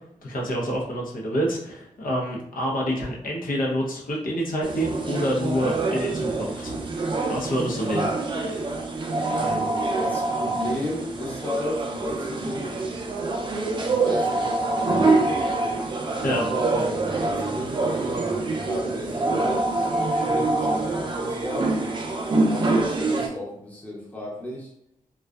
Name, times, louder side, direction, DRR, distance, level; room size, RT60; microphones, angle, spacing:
voice 1, 0.2-6.8 7.3-8.1 16.2-16.4, equal, 80° left, -2 dB, 0.7 m, -27 dB
sound 1, 4.6-23.3, right 2 dB, 35° right, 0.4 m, -25 dB
voice 2, 9.1-12.7 13.7-15.8 17.1-18.3 18.6-21.7 22.5-24.7, left 1 dB, 10° left, -3 dB, 0.6 m, -34 dB
2.5 x 2.2 x 2.2 m, 0.76 s
wide cardioid pair, 125°, 14 cm